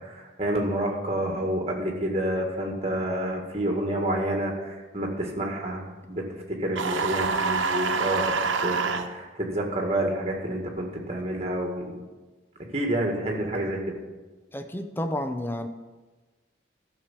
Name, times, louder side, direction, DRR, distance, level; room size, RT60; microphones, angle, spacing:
voice 1, 0.0-12.0 12.7-13.8, right 1 dB, 30° right, 1 dB, 2.0 m, -29 dB
sound 1, 6.8-9.1, right 4 dB, 85° right, 1.0 m, -26 dB
voice 2, 14.5-15.7, left 1 dB, 10° left, 7 dB, 0.6 m, -30 dB
12.0 x 6.6 x 7.5 m, 1.3 s
head